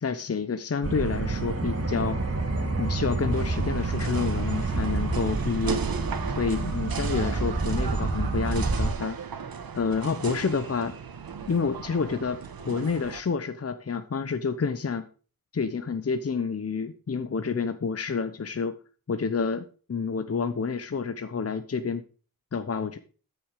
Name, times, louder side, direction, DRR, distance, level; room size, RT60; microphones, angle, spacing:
voice 1, 0.0-2.2 2.8-5.8 6.4-9.2 9.7-10.9 11.5-15.1 15.5-18.8 19.1-22.0 22.5-23.0, left 5 dB, 45° left, 10 dB, 1.0 m, -29 dB
sound 1, 0.8-8.9, right 3 dB, 40° right, 3.0 m, -28 dB
sound 2, 3.3-13.2, right 6 dB, 80° right, 1.4 m, -37 dB
13.0 x 6.7 x 5.1 m, 0.38 s
cardioid pair, 65°, 35 cm